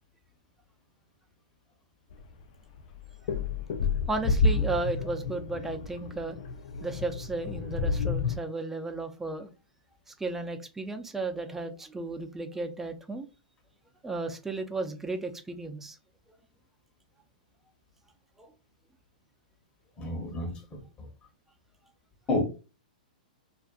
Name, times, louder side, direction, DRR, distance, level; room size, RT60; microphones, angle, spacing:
sound 1, 2.1-2.2 2.8-8.4, left 4 dB, 60° left, 0.5 m, -29 dB
voice 1, 4.1-6.4 6.8-9.5 10.1-13.3 14.0-16.0 18.4-18.5, right 3 dB, 5° right, 0.4 m, -34 dB
voice 2, 20.0-20.8 22.3-22.4, left 2 dB, 20° left, 0.9 m, -30 dB
2.5 x 2.5 x 2.4 m
hypercardioid pair, 125°, 5 cm